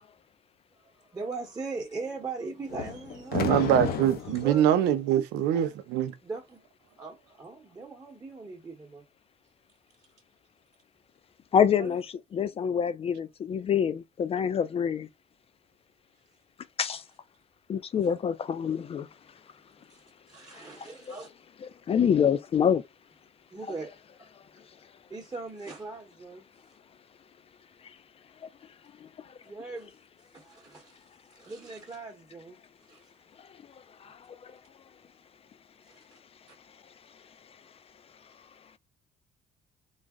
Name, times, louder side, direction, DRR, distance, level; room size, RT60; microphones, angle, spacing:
voice 1, 0.8-3.6 4.3-4.9 6.2-6.6 7.0-9.0 11.8-12.0 19.9-21.3 23.5-23.9 24.2-24.3 25.1-26.4 29.4-29.9 30.3-31.0 31.3-32.6 32.9-33.1 35.9-36.2, right 3 dB, 20° right, 1.1 m, -40 dB
sound 1, 2.7-4.6, left 8 dB, 65° left, 0.7 m, -32 dB
voice 2, 3.3-6.1, right 11 dB, 90° right, 0.6 m, -24 dB
voice 3, 11.5-12.1 12.3-15.1 16.8-17.0 17.7-19.1 20.6-20.7 21.9-22.8 29.0-29.1 34.0-34.1, left 8 dB, 35° left, 0.4 m, -26 dB
4.0 x 2.1 x 3.6 m
cardioid pair, 110°, 17 cm